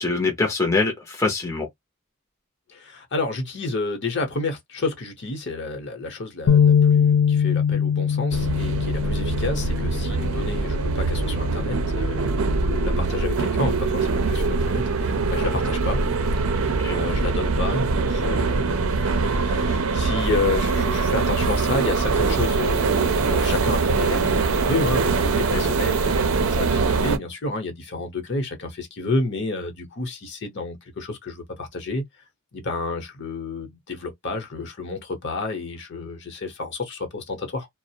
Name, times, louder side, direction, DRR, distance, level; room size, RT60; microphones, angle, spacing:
voice 1, 0.0-1.7 16.7-17.0 25.5-25.6, left 3 dB, 15° left, 0.6 m, -24 dB
voice 2, 2.7-16.0 16.5-32.0 32.5-37.7, left 3 dB, 55° left, 0.9 m, -30 dB
sound 1, 6.5-12.7, left 7 dB, 75° left, 0.4 m, -22 dB
sound 2, 8.3-27.2, right 4 dB, 70° right, 0.5 m, -23 dB
2.4 x 2.0 x 2.8 m
head